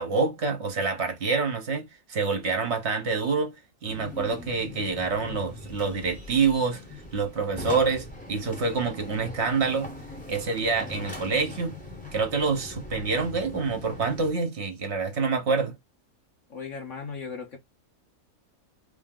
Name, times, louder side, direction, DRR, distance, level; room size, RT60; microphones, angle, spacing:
voice 1, 0.0-3.6 3.8-6.8 7.1-9.9 10.3-11.8 12.1-15.8, right 4 dB, 50° right, 1.3 m, -27 dB
sound 1, 3.8-14.3, left 1 dB, 5° left, 0.9 m, -41 dB
voice 2, 16.5-17.6, left 5 dB, 60° left, 1.2 m, -37 dB
3.5 x 2.7 x 3.7 m
omnidirectional pair, 1.5 m